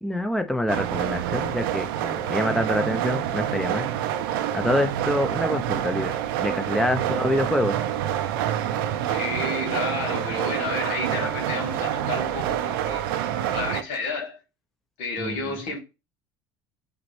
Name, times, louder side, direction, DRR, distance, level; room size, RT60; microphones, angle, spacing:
voice 1, 0.0-3.9 4.5-6.1 6.4-7.7 15.2-15.4, left 1 dB, ahead, 0.6 m, -26 dB
sound 1, 0.7-13.8, right 11 dB, 80° right, 0.5 m, -27 dB
voice 2, 9.1-13.0 13.5-14.4 15.0-15.8, left 3 dB, 70° left, 1.7 m, -31 dB
5.0 x 3.0 x 3.1 m
hypercardioid pair, 70°, 12 cm